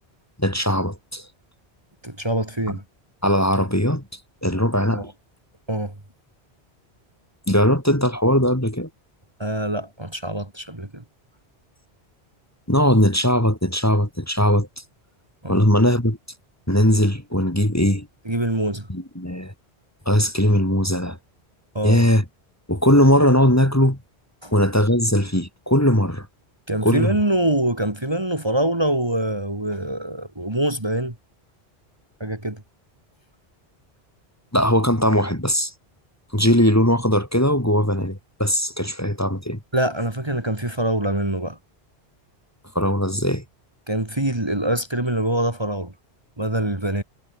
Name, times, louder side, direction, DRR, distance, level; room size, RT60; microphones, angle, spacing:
voice 1, 0.4-1.3 3.2-4.0 4.4-5.1 7.5-8.9 12.7-14.8 15.5-16.2 16.7-18.1 18.9-19.5 20.1-21.2 21.8-22.2 22.7-24.0 24.5-26.3 26.8-27.2 34.5-35.7 36.3-39.6 42.7-43.4, equal, 15° left, 2.9 m, -19 dB
voice 2, 2.0-2.8 4.9-5.0 5.7-5.9 9.4-11.0 15.4-15.6 18.3-18.9 21.7-22.0 24.4-24.5 26.7-31.2 32.2-32.6 39.7-41.6 43.9-45.9 46.4-47.0, right 1 dB, 25° right, 2.5 m, -24 dB
omnidirectional pair, 1.1 m